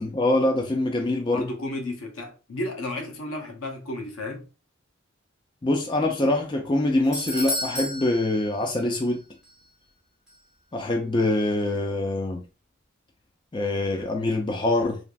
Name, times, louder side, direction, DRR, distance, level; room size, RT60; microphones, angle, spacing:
voice 1, 0.0-1.4 5.6-9.2 10.7-12.4 13.5-15.0, left 2 dB, 20° left, 0.4 m, -24 dB
voice 2, 1.3-4.4 11.0-11.3, left 1 dB, 85° left, 0.7 m, -33 dB
Doorbell, 6.6-9.2 9.4-9.5 10.3-10.4, left 1 dB, ahead, 0.9 m, -33 dB
3.2 x 2.5 x 2.3 m
head